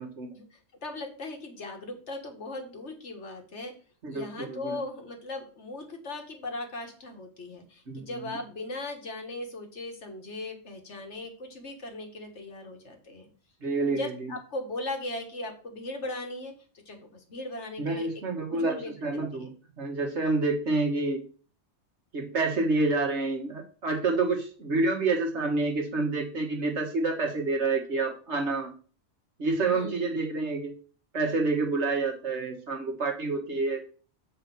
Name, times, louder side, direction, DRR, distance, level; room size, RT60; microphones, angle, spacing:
voice 1, 0.3-3.7 4.1-13.3 13.9-16.5 16.9-18.1 18.5-19.5 29.7-30.1, left 2 dB, 80° left, 4 dB, 2.0 m, -38 dB
voice 2, 4.0-4.8 7.9-8.3 13.6-14.1 17.8-19.5 19.8-21.2 22.1-28.7 29.4-30.7 31.1-33.8, right 3 dB, 80° right, 2 dB, 2.0 m, -28 dB
7.4 x 4.9 x 6.0 m, 0.39 s
omnidirectional pair, 1.2 m